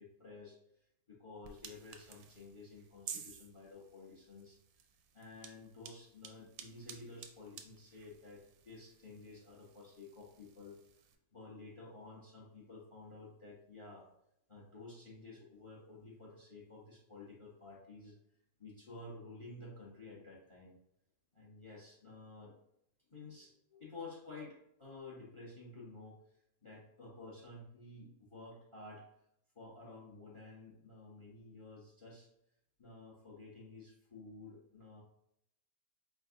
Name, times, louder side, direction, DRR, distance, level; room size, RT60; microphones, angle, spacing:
voice 1, 0.0-4.6 5.1-14.1 14.5-18.2 18.6-20.8 21.3-22.6 23.1-29.1 29.5-32.3 32.8-35.0, left 3 dB, 25° left, -3 dB, 0.7 m, -52 dB
sound 1, 1.4-11.2, right 7 dB, 85° right, 1.1 m, -53 dB
4.5 x 3.6 x 2.6 m, 0.78 s
omnidirectional pair, 1.6 m